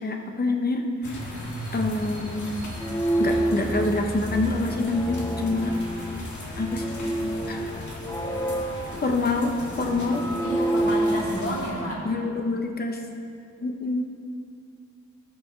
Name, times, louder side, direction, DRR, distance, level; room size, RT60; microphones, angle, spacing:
voice 1, 0.0-2.5 3.2-5.7 6.6-6.9 7.5-7.7 9.0-9.5 9.8-10.3 12.0-13.0 13.6-14.0, left 2 dB, 35° left, 3 dB, 0.9 m, -26 dB
sound 1, 1.0-11.7, left 1 dB, 85° left, 1.7 m, -36 dB
sound 2, 2.6-11.6, right 1 dB, 10° left, 0.5 m, -29 dB
voice 2, 10.4-12.1, left 1 dB, 50° left, -6 dB, 2.9 m, -30 dB
18.5 x 7.1 x 3.2 m, 2.5 s
wide cardioid pair, 135°, 29 cm